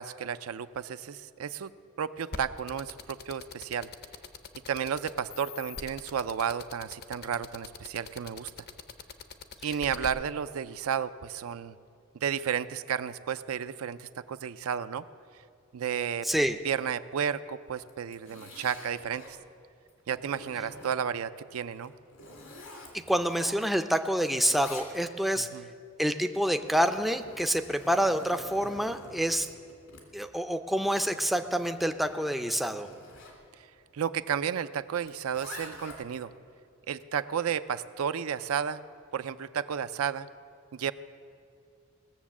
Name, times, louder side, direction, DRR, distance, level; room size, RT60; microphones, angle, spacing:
voice 1, 0.0-1.7 2.0-3.9 4.7-8.5 9.6-11.7 12.1-15.1 15.7-16.3 16.6-19.4 20.1-21.9 25.4-25.7 33.9-36.3 36.9-38.8 39.1-40.3 40.7-40.9, right 8 dB, 80° right, 12 dB, 0.4 m, -32 dB
sound 1, 2.3-10.1, left 5 dB, 50° left, 0.7 m, -42 dB
voice 2, 16.2-16.6 23.1-25.5 26.0-29.5 30.1-32.9, equal, ahead, 7 dB, 0.4 m, -27 dB
Zipper (clothing), 17.8-19.4 19.9-21.2 21.7-24.0 24.2-25.4 26.2-33.4 35.0-36.2, left 2 dB, 75° left, 2.6 m, -48 dB
18.5 x 7.1 x 7.2 m, 2.4 s
head